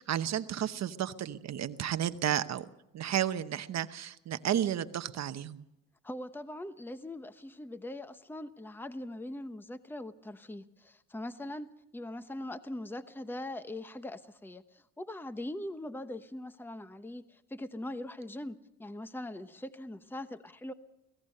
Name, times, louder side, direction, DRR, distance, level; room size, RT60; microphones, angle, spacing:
voice 1, 0.0-2.7 2.9-5.6, right 10 dB, 60° right, 11 dB, 0.9 m, -32 dB
voice 2, 6.0-20.7, left 1 dB, 5° left, 11 dB, 1.0 m, -41 dB
24.5 x 17.0 x 6.6 m, 0.86 s
cardioid pair, 90°, 30 cm